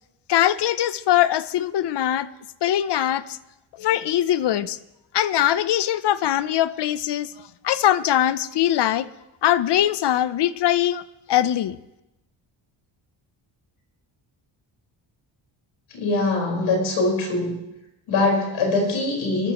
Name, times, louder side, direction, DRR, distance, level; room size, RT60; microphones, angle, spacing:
voice 1, 0.3-2.3 2.6-3.4 3.8-4.8 5.1-7.3 7.6-9.0 9.4-11.0 11.3-11.8, left 12 dB, 60° left, 16 dB, 0.7 m, -21 dB
voice 2, 15.9-17.5 18.1-19.5, left 2 dB, 85° left, 0 dB, 4.9 m, -22 dB
24.0 x 13.5 x 3.1 m, 0.91 s
cardioid pair, 100°, 47 cm